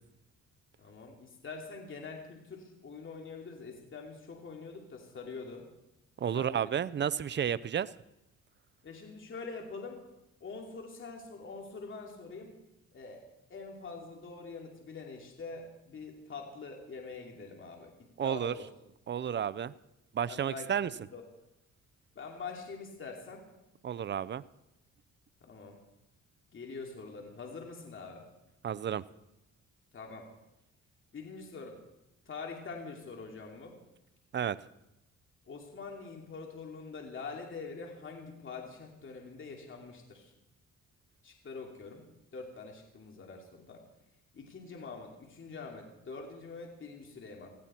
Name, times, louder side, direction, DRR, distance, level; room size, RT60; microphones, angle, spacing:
voice 1, 0.8-5.7 6.3-6.7 8.8-10.0 10.4-12.6 12.9-13.2 13.5-18.7 20.3-20.7 21.1-21.2 22.1-23.5 25.4-25.8 26.5-28.3 29.9-30.3 31.1-31.8 32.3-33.8 35.5-40.3 41.2-42.1 42.3-43.8 44.3-47.5, left 4 dB, 40° left, 1 dB, 2.9 m, -44 dB
voice 2, 6.2-7.9 18.2-18.5 19.1-19.7 20.1-20.9 23.8-24.4 28.6-29.0 34.3-34.6, right 9 dB, 35° right, 19 dB, 0.6 m, -31 dB
18.5 x 15.5 x 4.5 m, 0.89 s
cardioid pair, 90°, 30 cm